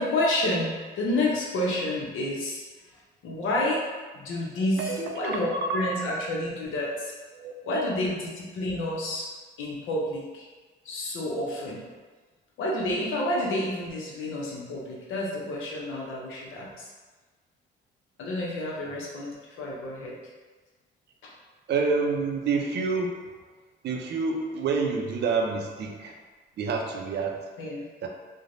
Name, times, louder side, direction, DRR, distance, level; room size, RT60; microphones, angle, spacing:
voice 1, 0.0-2.6 3.2-3.9 4.1-5.5 5.7-7.1 7.6-9.3 9.6-10.5 10.8-11.8 12.6-16.9 18.2-20.2 21.2-21.3 27.6-27.9, left 1 dB, 80° left, -3 dB, 0.7 m, -29 dB
voice 2, 4.8-5.9 7.3-7.8 21.7-23.1 23.8-26.2 26.6-27.4 28.0-28.1, right 4 dB, 60° right, 1 dB, 0.5 m, -28 dB
3.1 x 2.1 x 2.6 m, 1.3 s
cardioid pair, 90°, 20 cm